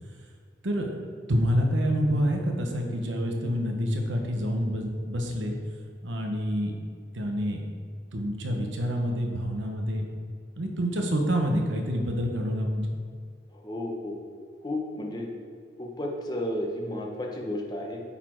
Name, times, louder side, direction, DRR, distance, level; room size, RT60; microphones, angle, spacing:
voice 1, 1.3-5.6 6.0-6.8 7.1-7.6 8.1-10.1 10.6-12.8, equal, 85° right, 3 dB, 1.0 m, -27 dB
voice 2, 13.5-14.2 14.6-15.3 15.8-18.0, left 1 dB, 20° left, 0 dB, 0.9 m, -32 dB
8.9 x 4.3 x 4.5 m, 2.1 s
head